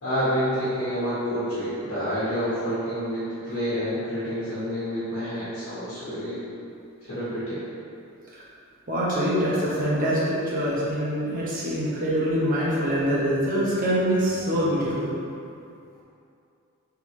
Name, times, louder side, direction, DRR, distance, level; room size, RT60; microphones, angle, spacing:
voice 1, 0.0-6.4 7.0-7.6, equal, 70° left, -13 dB, 1.4 m, -28 dB
voice 2, 8.9-15.1, equal, 40° right, -8 dB, 0.9 m, -24 dB
3.5 x 3.4 x 3.1 m, 2.6 s
head